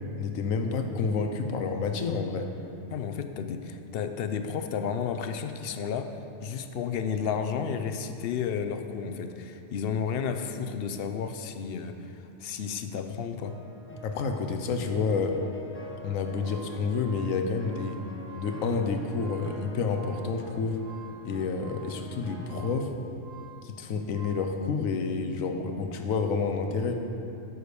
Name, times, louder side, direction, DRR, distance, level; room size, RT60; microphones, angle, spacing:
voice 1, 0.2-2.5 14.0-15.4 16.0-18.0 18.4-20.8 21.2-22.9 23.6-26.9, left 4 dB, 85° left, 5 dB, 1.1 m, -29 dB
voice 2, 2.9-13.6, left 6 dB, 60° left, 8 dB, 0.6 m, -32 dB
sound 1, 13.4-22.6, left 1 dB, 10° left, 0.8 m, -47 dB
sound 2, 16.4-24.6, right 7 dB, 75° right, 1.1 m, -50 dB
9.4 x 5.1 x 6.6 m, 2.7 s
omnidirectional pair, 1.4 m